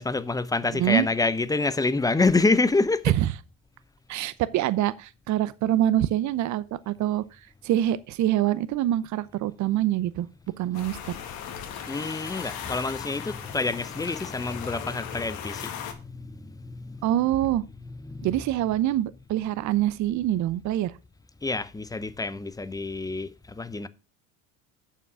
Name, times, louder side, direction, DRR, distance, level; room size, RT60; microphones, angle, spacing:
voice 1, 0.0-3.2 11.5-17.3 17.8-18.7 21.4-23.9, left 3 dB, 10° left, 0.6 m, -27 dB
voice 2, 0.7-1.1 3.1-3.2 4.1-7.2 7.6-10.3 10.6-11.2 17.0-17.6 18.2-20.9, right 13 dB, 45° right, 0.7 m, -25 dB
sound 1, 10.7-15.9, left 9 dB, 65° left, 1.9 m, -38 dB
6.9 x 6.0 x 6.1 m
hypercardioid pair, 85°, 39 cm